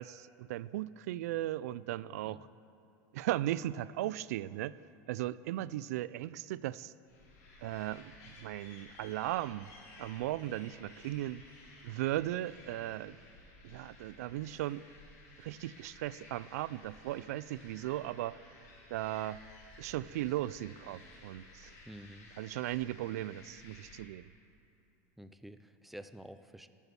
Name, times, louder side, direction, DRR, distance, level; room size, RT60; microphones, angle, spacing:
voice 1, 0.0-2.5 3.1-4.7 5.1-6.9 7.6-9.7 10.0-11.4 11.8-13.2 13.6-14.8 15.4-18.4 18.9-19.4 19.8-21.7 22.4-24.2, right 14 dB, 80° right, 18 dB, 0.3 m, -37 dB
sound 1, 7.1-24.0, left 2 dB, 75° left, 3.1 m, -56 dB
voice 2, 21.8-22.3 25.2-26.7, equal, ahead, 11 dB, 0.3 m, -49 dB
13.0 x 8.3 x 6.9 m, 2.8 s
supercardioid pair, 155°, 8 cm